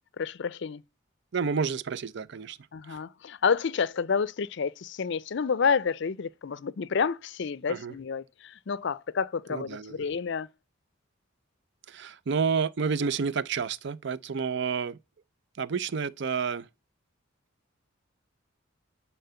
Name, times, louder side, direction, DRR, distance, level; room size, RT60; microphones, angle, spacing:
voice 1, 0.2-0.8 2.7-10.5, left 6 dB, 60° left, 0.5 m, -29 dB
voice 2, 1.3-2.6 2.9-3.0 7.7-7.9 9.5-10.0 11.9-15.0 15.6-16.7, right 5 dB, 60° right, 0.5 m, -30 dB
10.5 x 4.4 x 6.9 m
head